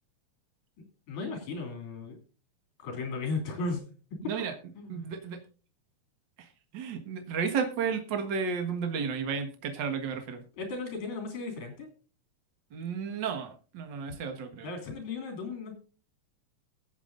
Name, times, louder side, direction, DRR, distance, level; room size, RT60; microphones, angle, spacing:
voice 1, 1.1-2.2 2.8-3.8 4.8-5.1 10.6-11.9 14.6-15.7, left 3 dB, 60° left, 4 dB, 4.2 m, -35 dB
voice 2, 4.2-4.5 4.9-5.4 6.4-6.5 6.7-10.4 12.7-14.7, right 6 dB, 50° right, 6 dB, 1.5 m, -33 dB
22.0 x 7.9 x 2.5 m, 0.37 s
omnidirectional pair, 4.0 m